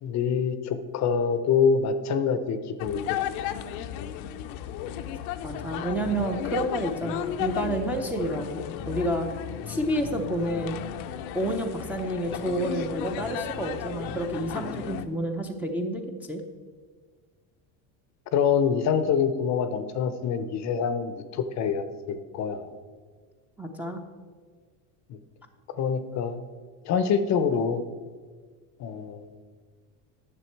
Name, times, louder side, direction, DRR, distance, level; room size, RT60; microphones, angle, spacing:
voice 1, 0.0-3.3 4.0-4.1 18.3-22.7 25.1-25.2 25.8-26.4 26.8-27.8 28.8-29.3, left 6 dB, 40° left, 11 dB, 0.6 m, -26 dB
sound 1, 2.8-15.1, left 10 dB, 80° left, 0.7 m, -34 dB
voice 2, 5.4-9.3 9.7-10.8 11.3-16.4 23.6-24.0, right 1 dB, 5° right, 0 dB, 0.5 m, -29 dB
10.0 x 6.9 x 4.5 m, 1.5 s
cardioid pair, 135°, 42 cm